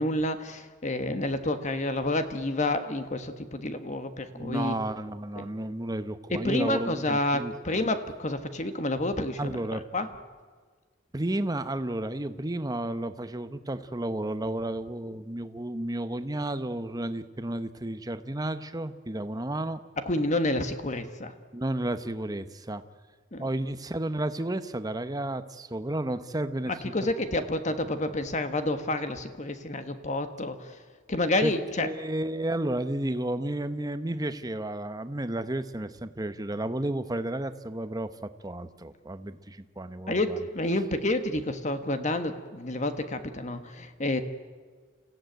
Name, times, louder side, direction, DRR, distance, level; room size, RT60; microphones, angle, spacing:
voice 1, 0.0-4.7 5.4-5.5 6.3-10.1 20.0-21.3 23.3-23.5 26.7-30.8 31.1-31.9 40.1-44.2, left 1 dB, 35° left, 9 dB, 1.4 m, -29 dB
voice 2, 4.3-7.8 9.4-9.8 11.1-19.8 21.5-22.8 23.4-27.1 31.4-40.4, right 1 dB, 20° right, 11 dB, 0.9 m, -32 dB
28.5 x 16.0 x 9.2 m, 1.5 s
head